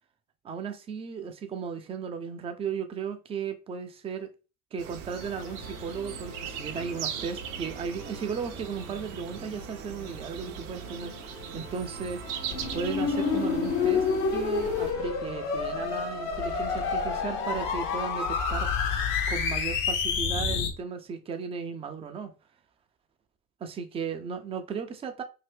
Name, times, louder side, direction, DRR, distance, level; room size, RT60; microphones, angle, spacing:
voice 1, 0.4-4.3 4.7-12.2 12.7-18.7 19.3-22.3 23.6-25.2, right 6 dB, 15° right, 0.3 m, -35 dB
sound 1, 4.8-14.9, right 9 dB, 65° right, 0.6 m, -40 dB
Musical instrument, 5.2-18.0, left 4 dB, 85° left, 0.9 m, -46 dB
sound 2, 12.5-20.7, left 5 dB, 65° left, 0.8 m, -28 dB
2.7 x 2.6 x 3.3 m
hypercardioid pair, 70°, 46 cm